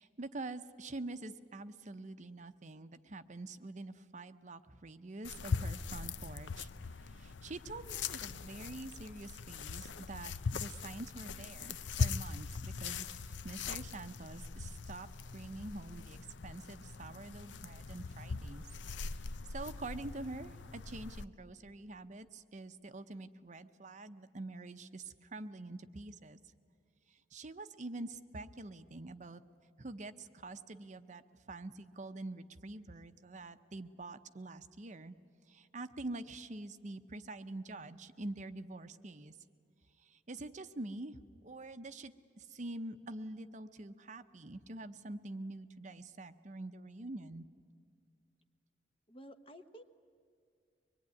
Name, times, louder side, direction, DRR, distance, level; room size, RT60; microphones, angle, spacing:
voice 1, 0.0-6.7 7.0-15.1 15.3-16.2 16.4-18.7 19.1-26.4 27.1-29.4 29.8-35.2 35.5-39.3 40.0-41.2 41.4-47.5, right 2 dB, 40° right, 10 dB, 0.7 m, -46 dB
sound 1, 5.2-21.2, left 5 dB, 85° left, 0.6 m, -41 dB
voice 2, 49.1-49.8, equal, 30° left, 9 dB, 1.0 m, -52 dB
24.0 x 21.0 x 9.6 m, 2.2 s
head